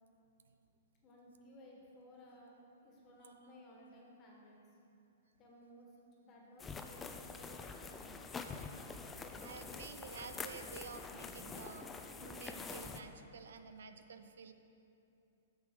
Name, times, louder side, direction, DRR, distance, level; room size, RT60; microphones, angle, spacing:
voice 1, 1.0-2.5 2.8-4.6 5.3-5.9 6.2-8.2, left 1 dB, 30° left, -2 dB, 1.6 m, -58 dB
sound 1, 6.6-13.0, left 4 dB, 15° left, 0.4 m, -46 dB
voice 2, 9.4-14.5, right 5 dB, 80° right, 8 dB, 0.5 m, -51 dB
7.0 x 6.1 x 5.0 m, 2.8 s
hypercardioid pair, 140°, 0 cm